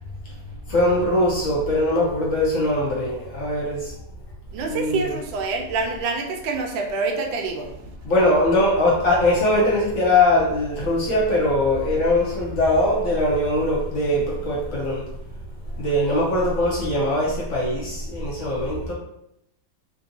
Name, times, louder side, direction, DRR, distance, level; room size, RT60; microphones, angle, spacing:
voice 1, 0.7-3.9 4.7-5.1 8.0-15.0 15.8-18.9, left 1 dB, 60° left, -4 dB, 0.9 m, -21 dB
voice 2, 4.5-7.7, right 4 dB, 90° right, 3 dB, 1.4 m, -26 dB
3.4 x 2.6 x 2.6 m, 0.81 s
omnidirectional pair, 2.0 m